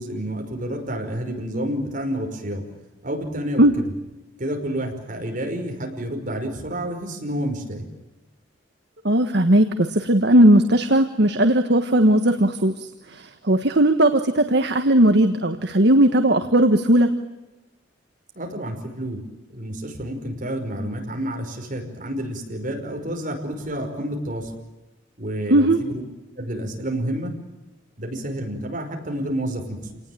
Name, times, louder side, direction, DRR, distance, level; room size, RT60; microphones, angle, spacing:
voice 1, 0.0-2.6 3.0-3.9 4.4-7.8 18.3-19.2 19.5-24.5 25.2-26.0 26.4-27.3 28.0-29.8, right 1 dB, 45° right, 2 dB, 5.4 m, -29 dB
voice 2, 9.0-17.1 25.5-25.8, right 1 dB, 60° right, 7 dB, 1.4 m, -17 dB
28.5 x 19.0 x 9.3 m, 1.0 s
head